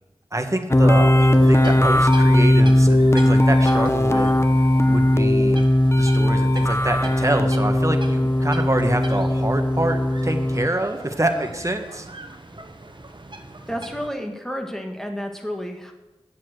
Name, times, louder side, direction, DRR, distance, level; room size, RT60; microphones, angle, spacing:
voice 1, 0.3-4.3 4.6-5.6 6.0-12.1, right 1 dB, 30° right, 5 dB, 1.4 m, -26 dB
sound 1, 0.7-10.7, left 1 dB, 25° left, 0.8 m, -18 dB
sound 2, 1.3-14.1, right 2 dB, 50° right, 1.2 m, -41 dB
voice 2, 13.7-15.9, equal, 5° left, 4 dB, 1.8 m, -31 dB
10.0 x 7.3 x 7.8 m, 1.0 s
wide cardioid pair, 45°, 10 cm